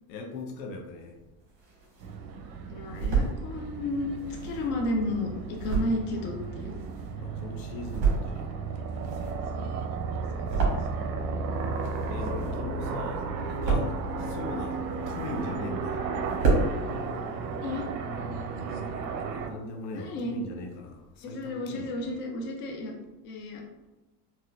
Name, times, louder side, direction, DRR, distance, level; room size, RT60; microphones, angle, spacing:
voice 1, 0.1-1.2 7.2-8.5 9.0-9.4 12.1-13.2 13.7-16.0 19.5-22.2, left 2 dB, 85° left, 2 dB, 0.8 m, -40 dB
sound 1, 1.2-2.2 2.6-3.4 4.1-7.3 7.7-8.5 8.8-11.3 11.5-12.8 13.1-14.1 14.6-15.7 16.0-16.1 16.3-16.7, right 4 dB, 50° right, 1.4 m, -29 dB
sound 2, 2.0-19.5, right 4 dB, 90° right, 0.6 m, -34 dB
voice 2, 2.7-4.1 4.4-6.8 9.5-9.7 10.3-10.7 17.6-17.9 19.9-20.4 21.2-22.9 23.2-23.6, left 2 dB, 25° left, 0 dB, 0.3 m, -32 dB
4.1 x 2.4 x 2.2 m, 1.1 s
supercardioid pair, 120°, 50 cm